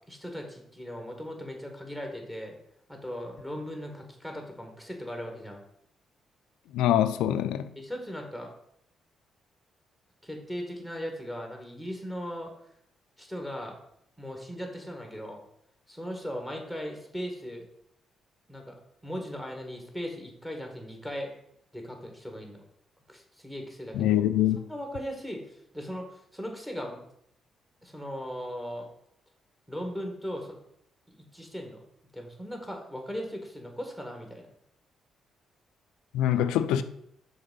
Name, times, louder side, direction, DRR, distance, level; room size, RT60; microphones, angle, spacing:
voice 1, 0.1-2.6 2.9-5.6 7.8-8.5 10.2-12.5 13.2-13.7 14.2-15.4 15.9-17.7 18.5-18.8 19.0-21.3 21.7-22.6 23.1-24.2 24.7-27.0 27.8-28.9 29.7-30.6 31.1-31.8 32.1-34.5 36.3-36.4, equal, 5° right, 1.9 m, -38 dB
voice 2, 6.7-7.7 23.9-24.6 36.1-36.8, left 11 dB, 90° left, 0.4 m, -24 dB
5.8 x 3.6 x 5.5 m
supercardioid pair, 65°, 0 cm